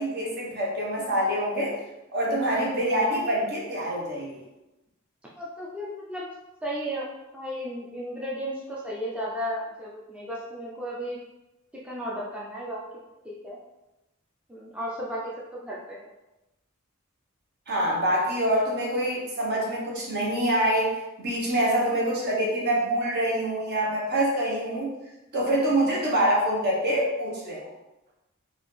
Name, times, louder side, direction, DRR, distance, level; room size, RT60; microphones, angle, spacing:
voice 1, 0.0-1.7 2.1-4.4 17.7-24.9 25.3-27.6, right 1 dB, 50° right, -4 dB, 1.1 m, -25 dB
voice 2, 5.3-6.2 6.6-7.1 7.3-11.2 11.8-12.8 13.2-13.6 14.5-15.3 15.6-16.1, equal, 5° right, -6 dB, 0.4 m, -34 dB
3.9 x 2.5 x 3.2 m, 0.98 s
head